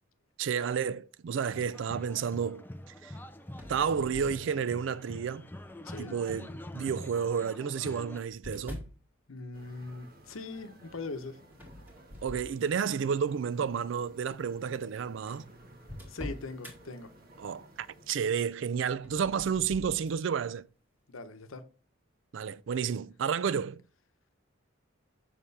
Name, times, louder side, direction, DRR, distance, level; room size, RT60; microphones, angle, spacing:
voice 1, 0.4-2.6 3.0-3.1 3.7-5.5 6.0-8.9 12.2-15.4 17.4-20.7 22.3-23.8, right 7 dB, 65° right, 0.3 m, -31 dB
sound 1, 1.5-8.2, left 1 dB, 10° left, 0.4 m, -45 dB
sound 2, 3.5-4.9 5.6-6.0 7.1-9.0 11.5-13.1 13.5-13.8 14.6-14.7 14.8-14.9 15.3-16.8 18.9-20.2, left 1 dB, 10° right, 2.0 m, -45 dB
voice 2, 5.8-6.2 9.3-11.4 16.1-17.1 21.1-21.6, left 3 dB, 80° left, 0.9 m, -41 dB
sound 3, 9.5-18.1, right 1 dB, 45° right, 1.5 m, -55 dB
6.9 x 5.9 x 3.3 m
head